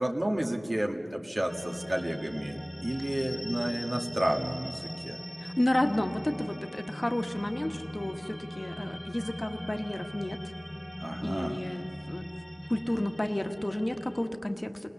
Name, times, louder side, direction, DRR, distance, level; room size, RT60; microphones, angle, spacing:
voice 1, 0.0-5.2 11.0-11.6, right 1 dB, 45° right, 2 dB, 1.6 m, -31 dB
sound 1, 1.5-14.3, equal, 10° left, 1.6 m, -40 dB
voice 2, 5.4-10.4 11.2-12.3 12.7-14.9, left 1 dB, 30° left, 6 dB, 1.3 m, -31 dB
28.0 x 20.0 x 7.1 m, 2.5 s
wide cardioid pair, 55°, 0 cm